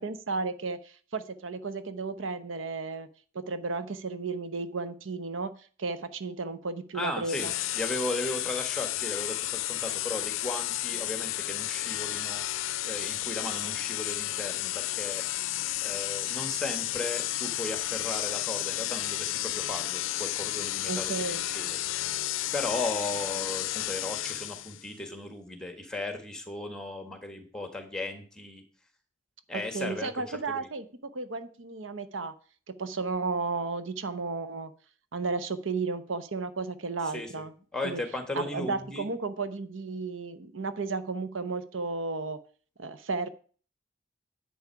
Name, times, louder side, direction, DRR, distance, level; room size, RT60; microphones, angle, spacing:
voice 1, 0.0-3.1 3.3-5.5 5.8-7.5 20.9-21.4 29.5-32.3 32.7-34.7 35.1-37.5 37.8-38.0 38.3-42.4 42.8-43.3, right 4 dB, 80° right, 12 dB, 0.9 m, -33 dB
voice 2, 6.9-12.4 12.8-15.3 15.8-21.9 22.5-28.6 29.5-30.7 37.1-37.5 37.7-39.1, left 2 dB, 5° left, 6 dB, 1.7 m, -36 dB
sound 1, 7.3-24.9, left 15 dB, 85° left, 0.4 m, -32 dB
10.5 x 7.9 x 4.7 m, 0.41 s
head